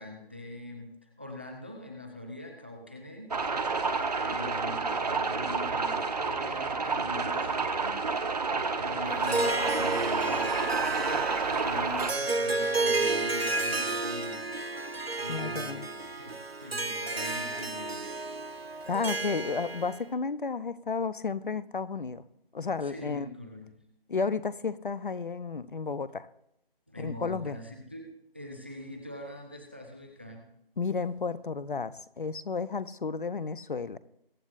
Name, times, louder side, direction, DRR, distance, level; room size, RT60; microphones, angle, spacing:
voice 1, 0.0-3.3 4.1-8.0 8.7-14.4 15.2-18.1 18.6-18.8 22.8-23.8 26.9-30.5, left 1 dB, 10° right, 4 dB, 0.5 m, -43 dB
sound 1, 3.3-12.1, right 4 dB, 45° right, 1.0 m, -30 dB
Harp, 9.1-20.0, right 3 dB, 85° right, 1.1 m, -31 dB
voice 2, 15.3-15.9 18.9-22.2 22.5-23.3 24.1-26.3 27.0-27.6 30.8-34.0, left 5 dB, 60° left, 16 dB, 0.7 m, -32 dB
22.0 x 9.6 x 2.5 m, 0.78 s
figure-of-eight pair, 155°, 30 cm